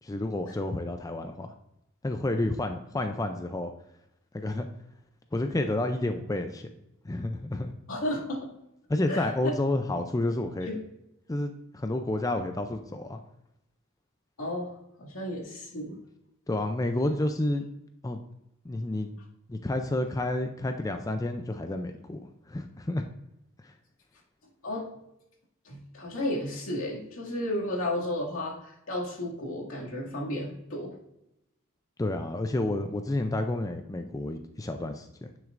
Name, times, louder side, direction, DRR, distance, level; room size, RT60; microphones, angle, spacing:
voice 1, 0.0-1.5 2.0-3.7 4.3-4.7 5.3-6.7 7.0-7.7 8.9-10.7 11.3-13.2 16.5-17.7 18.0-18.2 18.6-19.1 19.5-22.2 22.5-23.1 23.6-23.7 32.0-35.3, left 1 dB, 15° left, 6 dB, 0.4 m, -30 dB
voice 2, 7.9-8.5 9.1-9.5 10.7-10.8 14.4-14.7 15.0-16.0 24.6-24.9 25.7-31.0, left 1 dB, 85° left, -2 dB, 2.2 m, -33 dB
10.0 x 6.3 x 2.5 m, 0.84 s
head